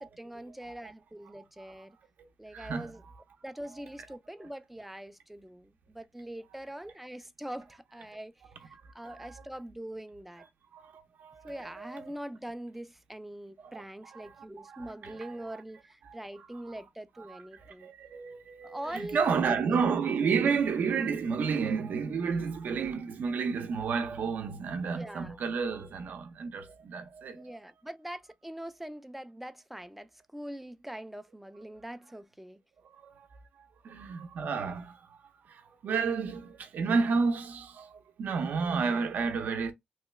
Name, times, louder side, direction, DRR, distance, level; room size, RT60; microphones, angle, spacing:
voice 1, 0.0-2.0 2.4-3.0 3.4-8.3 8.6-10.4 11.4-17.9 18.6-19.8 24.9-25.4 27.3-32.6, right 1 dB, 5° right, 0.4 m, -43 dB
voice 2, 2.5-3.1 9.0-9.3 10.7-12.1 13.6-15.3 16.1-16.2 16.7-16.8 17.3-27.6 32.8-33.3 33.8-35.2 35.5-39.7, right 5 dB, 65° right, 0.6 m, -31 dB
3.1 x 2.2 x 3.1 m
cardioid pair, 100°, 3 cm